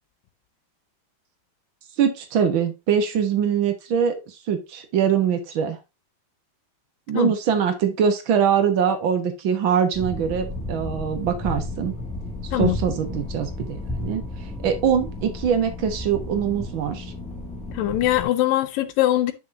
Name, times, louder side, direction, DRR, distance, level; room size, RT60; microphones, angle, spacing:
voice 1, 2.0-5.8 7.1-11.9 12.6-14.2 14.6-17.1, right 7 dB, 65° right, 1.2 m, -23 dB
sound 1, 9.9-18.2, left 2 dB, 5° left, 1.2 m, -33 dB
voice 2, 17.7-19.3, left 14 dB, 75° left, 2.4 m, -21 dB
9.4 x 6.4 x 2.6 m
omnidirectional pair, 4.2 m